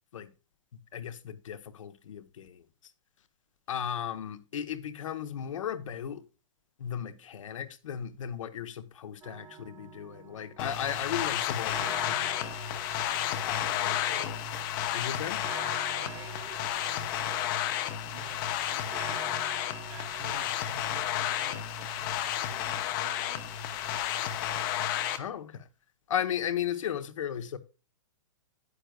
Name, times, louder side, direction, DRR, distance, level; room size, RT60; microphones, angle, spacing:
voice 1, 0.9-2.6 3.7-6.2 6.8-12.9 13.4-14.0 14.9-15.4 25.2-25.7 26.1-27.6, left 9 dB, 75° left, 0.9 m, -36 dB
sound 1, 9.2-20.5, right 9 dB, 15° right, 0.5 m, -48 dB
sound 2, 10.6-25.2, left 11 dB, 40° left, 0.8 m, -32 dB
voice 2, 13.8-14.4 16.0-17.5 18.1-24.6, right 6 dB, 60° right, 2.3 m, -50 dB
9.8 x 9.0 x 2.2 m
hypercardioid pair, 135°, 17 cm